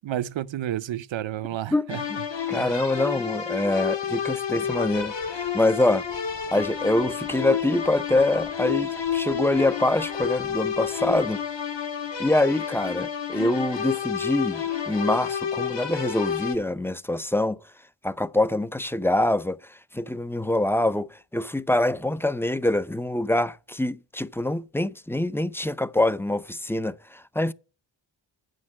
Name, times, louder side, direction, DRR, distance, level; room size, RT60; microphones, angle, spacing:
voice 1, 0.0-2.1 2.5-2.8, right 12 dB, 70° right, 0.7 m, -31 dB
sound 1, 1.9-16.5, left 8 dB, 60° left, 1.8 m, -30 dB
voice 2, 2.5-6.0 6.5-11.4 12.2-17.6 18.0-27.5, left 1 dB, 5° left, 0.5 m, -25 dB
sound 2, 4.6-11.3, left 2 dB, 90° left, 4.2 m, -52 dB
9.4 x 6.6 x 7.3 m
cardioid pair, 60°, 48 cm